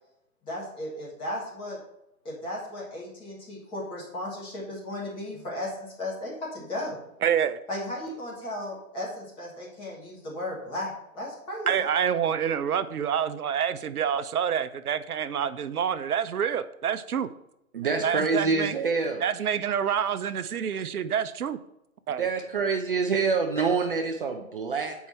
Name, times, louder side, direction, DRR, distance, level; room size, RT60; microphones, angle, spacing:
voice 1, 0.5-1.8 2.2-7.0 7.7-11.7, left 1 dB, 10° left, -4 dB, 1.4 m, -35 dB
voice 2, 7.2-7.6 11.7-17.3 17.8-18.7 19.2-21.6 22.1-22.2, right 8 dB, 85° right, 12 dB, 0.6 m, -27 dB
voice 3, 17.7-19.2 22.1-24.9, right 4 dB, 40° right, 3 dB, 0.6 m, -26 dB
7.2 x 4.6 x 4.2 m, 0.83 s
hypercardioid pair, 145°, 43 cm